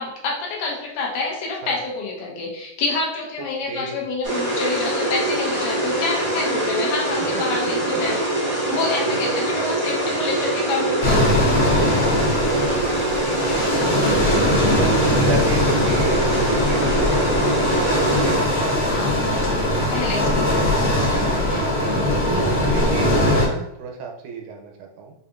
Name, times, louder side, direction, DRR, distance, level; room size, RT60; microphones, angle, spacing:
voice 1, 0.0-8.2 8.5-12.2 18.9-19.2 19.9-21.3, left 3 dB, 75° left, -3 dB, 2.3 m, -28 dB
voice 2, 3.7-4.1 7.3-7.4 9.0-9.7 12.5-13.9 14.8-20.0 21.5-21.8 22.3-25.1, right 4 dB, 80° right, 1 dB, 2.0 m, -32 dB
sound 1, 4.2-18.4, right 1 dB, 55° right, 0.7 m, -23 dB
sound 2, 11.0-23.5, left 1 dB, 50° left, 0.6 m, -21 dB
6.8 x 2.4 x 2.5 m, 0.82 s
omnidirectional pair, 3.8 m